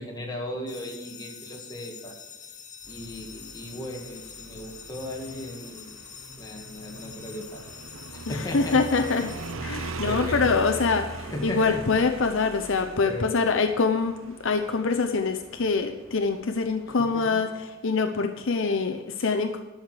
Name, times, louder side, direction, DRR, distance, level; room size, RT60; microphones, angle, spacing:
voice 1, 0.0-2.1 2.9-6.0 6.3-7.7 8.1-8.8 10.1-10.7 11.3-11.8 13.0-13.3 17.0-17.4, left 1 dB, 20° left, -1 dB, 2.1 m, -36 dB
sound 1, 0.7-9.6, left 7 dB, 40° left, 1.0 m, -45 dB
Motorcycle, 2.8-17.2, right 3 dB, 70° right, 0.8 m, -40 dB
voice 2, 8.3-9.3 9.6-19.6, left 4 dB, 65° left, 6 dB, 0.7 m, -25 dB
11.5 x 6.5 x 6.6 m, 1.2 s
head